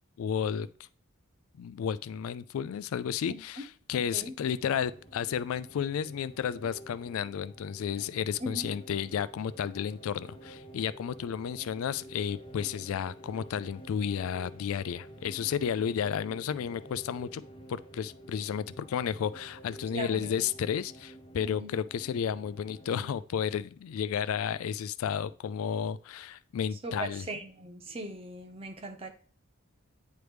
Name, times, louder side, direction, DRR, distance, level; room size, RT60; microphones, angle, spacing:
voice 1, 0.2-0.7 1.5-17.4 17.7-27.3, left 8 dB, 80° left, 0.3 m, -32 dB
voice 2, 3.9-4.3 8.4-8.7 19.9-20.3 21.4-21.8 26.8-29.1, right 1 dB, 25° right, 0.8 m, -39 dB
sound 1, 4.5-23.3, right 1 dB, 25° left, 0.7 m, -50 dB
9.2 x 3.4 x 3.1 m
head